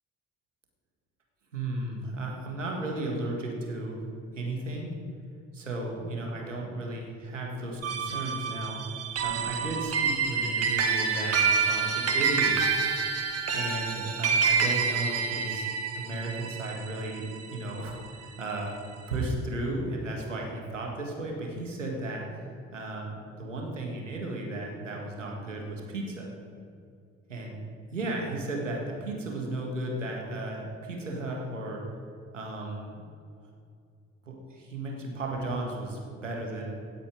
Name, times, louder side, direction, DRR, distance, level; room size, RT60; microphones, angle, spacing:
voice 1, 1.5-4.1 4.3-4.9 5.5-8.9 9.2-12.7 13.5-15.7 15.9-18.8 19.1-22.4 22.7-26.4 27.3-27.6 27.9-31.8 32.3-33.0 34.2-36.7, right 2 dB, 85° right, 0 dB, 1.7 m, -34 dB
sound 1, 7.8-18.4, right 5 dB, 40° right, 1.8 m, -28 dB
17.0 x 8.5 x 5.1 m, 2.4 s
figure-of-eight pair, 45°, 37 cm